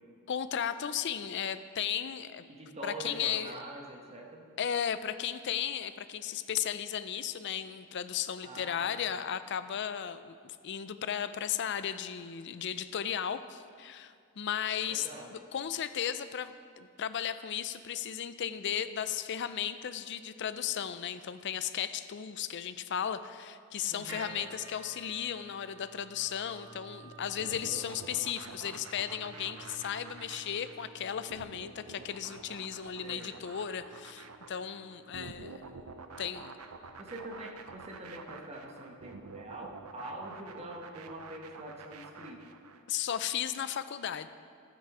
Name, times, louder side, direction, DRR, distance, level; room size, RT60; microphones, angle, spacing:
voice 1, 0.3-2.4 2.8-3.6 4.6-35.6 36.2-36.5 42.9-44.3, left 9 dB, 55° left, 12 dB, 0.4 m, -35 dB
voice 2, 2.5-4.5 8.4-9.0 14.9-15.3 23.9-24.3 33.0-33.3 37.0-42.4, right 1 dB, 30° right, 1 dB, 1.3 m, -44 dB
sound 1, 24.1-40.3, right 2 dB, 15° right, 2.0 m, -54 dB
sound 2, 27.4-42.8, right 4 dB, 90° right, 0.7 m, -48 dB
12.0 x 9.2 x 4.8 m, 2.2 s
head